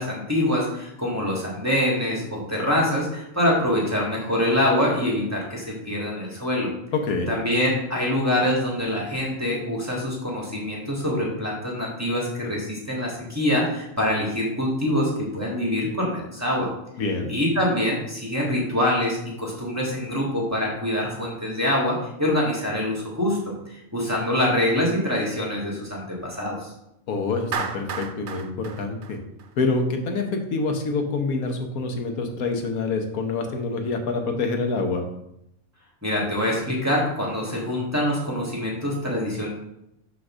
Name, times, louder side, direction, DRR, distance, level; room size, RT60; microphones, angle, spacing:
voice 1, 0.0-6.7 7.3-16.7 17.3-26.7 36.0-39.5, left 1 dB, 10° right, -3 dB, 1.6 m, -25 dB
voice 2, 7.0-7.3 17.0-17.3 27.1-29.2 29.6-35.0, left 3 dB, 80° left, 4 dB, 1.5 m, -26 dB
Clapping, 27.5-29.8, right 6 dB, 60° right, 0.8 m, -32 dB
6.2 x 3.9 x 6.0 m, 0.82 s
omnidirectional pair, 1.5 m